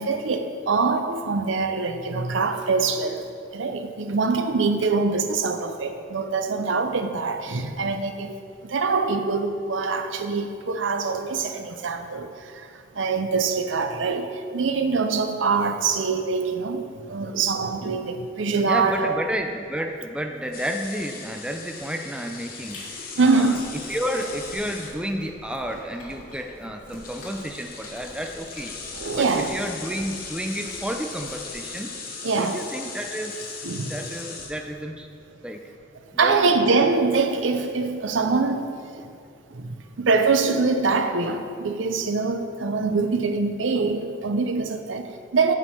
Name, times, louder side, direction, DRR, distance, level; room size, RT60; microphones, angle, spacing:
voice 1, 0.0-19.2 23.2-23.7 28.9-29.6 32.2-32.7 33.6-33.9 36.1-39.1 39.5-45.5, right 4 dB, 80° right, 0.6 m, -24 dB
voice 2, 18.6-22.8 23.2-23.5 23.9-28.7 29.1-31.9 32.4-33.4 33.9-35.1 35.4-35.6 36.2-36.5, equal, 5° right, 0.4 m, -31 dB
sound 1, 20.5-25.3 26.5-26.6 26.9-34.8, left 4 dB, 50° left, 1.0 m, -38 dB
Chewing mastication, 22.5-31.8, left 1 dB, 80° left, 1.9 m, -46 dB
9.9 x 6.2 x 4.4 m
head